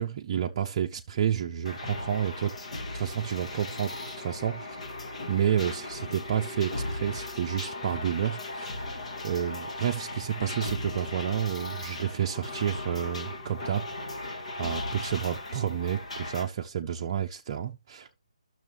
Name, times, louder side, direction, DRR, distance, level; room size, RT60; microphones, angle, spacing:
voice 1, 0.0-2.5 2.9-4.8 5.3-8.9 9.2-14.2 14.6-18.1, right 9 dB, 35° right, 0.5 m, -30 dB
sound 1, 1.7-16.4, left 2 dB, 65° left, 2.1 m, -37 dB
12.0 x 6.2 x 3.1 m
figure-of-eight pair, 145°, 4 cm